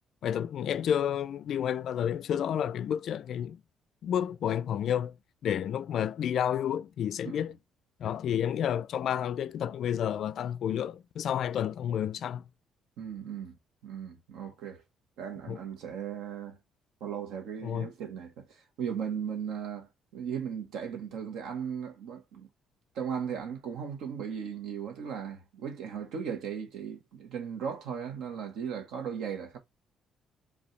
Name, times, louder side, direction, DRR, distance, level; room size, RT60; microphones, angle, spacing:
voice 1, 0.2-3.6 4.0-5.1 5.4-7.5 8.0-12.4 15.5-15.6 17.6-17.9, left 9 dB, 60° left, 0.3 m, -30 dB
voice 2, 13.0-14.8 15.2-16.6 17.0-22.5 22.9-29.6, right 7 dB, 85° right, 1.3 m, -37 dB
5.2 x 2.7 x 3.3 m
cardioid pair, 120°, 0 cm